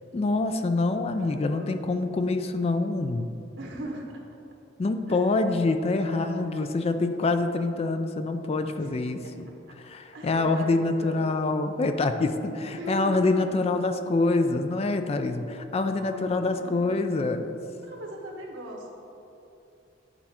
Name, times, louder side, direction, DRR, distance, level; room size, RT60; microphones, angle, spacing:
voice 1, 0.1-3.3 4.8-9.5 9.8-17.5, left 3 dB, 35° left, 8 dB, 0.3 m, -26 dB
voice 2, 1.1-2.0 3.6-4.0 5.1-5.4 6.0-7.0 8.7-8.9 9.2-9.3 9.7-9.8 10.1-11.2 12.7-13.4 15.1-15.5 16.0-16.9 17.8-18.9, right 1 dB, 85° right, 0 dB, 1.2 m, -40 dB
10.5 x 4.3 x 4.2 m, 2.7 s
head